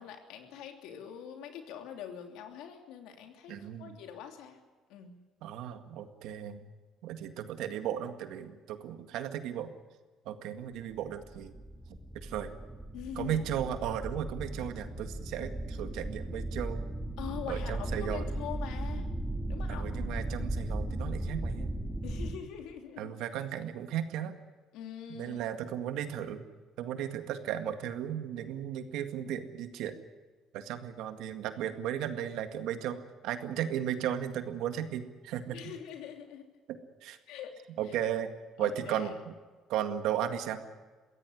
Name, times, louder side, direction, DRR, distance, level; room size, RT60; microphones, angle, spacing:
voice 1, 0.0-4.6 4.9-5.2 12.9-13.4 17.2-19.1 19.5-19.9 22.0-23.1 24.7-25.4 35.5-36.5 37.3-37.6 37.9-38.0 38.6-39.1, left 9 dB, 90° left, 4 dB, 3.1 m, -43 dB
voice 2, 3.5-4.0 5.4-6.7 7.0-9.7 10.3-11.5 12.1-12.5 13.2-16.8 17.5-18.2 19.7-21.7 23.0-24.4 25.1-26.4 26.8-30.0 30.5-33.0 33.2-35.6 36.7-37.2 37.8-38.3 38.6-39.3 39.7-40.6, right 10 dB, 85° right, 8 dB, 2.0 m, -35 dB
sound 1, 11.2-22.4, right 1 dB, ahead, 2.4 m, -36 dB
23.0 x 16.5 x 9.9 m, 1.4 s
cardioid pair, 115°, 0 cm